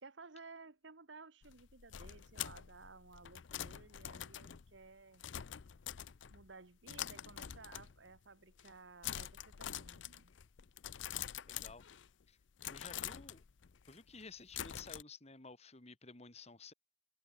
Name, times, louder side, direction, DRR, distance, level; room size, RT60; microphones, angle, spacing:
voice 1, 0.0-5.2 6.3-10.3, right 4 dB, 75° right, 1.5 m, -56 dB
sound 1, 1.4-6.5 6.9-8.2 8.5-8.8 9.0-12.2 12.6-15.0, left 10 dB, 75° left, 0.6 m, -46 dB
voice 2, 11.5-11.8 12.3-12.4 12.7-13.4 13.9-16.7, left 4 dB, 35° left, 2.4 m, -53 dB
head